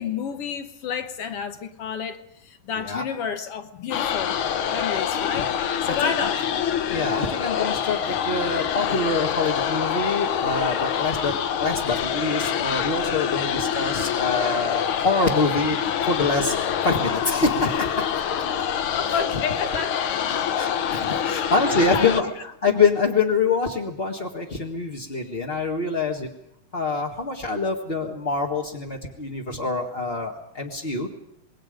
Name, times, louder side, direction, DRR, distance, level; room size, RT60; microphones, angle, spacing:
voice 1, 0.0-4.4 4.7-5.5 5.8-6.5 18.9-20.8 21.2-22.1, left 7 dB, 60° left, 1.7 m, -31 dB
sound 1, 3.9-22.2, left 8 dB, 80° left, 1.1 m, -26 dB
voice 2, 5.9-6.3 6.9-18.2 19.1-19.2 20.6-22.3 22.6-26.3 26.7-31.1, left 3 dB, 25° left, 1.2 m, -25 dB
27.0 x 21.5 x 5.2 m
omnidirectional pair, 3.7 m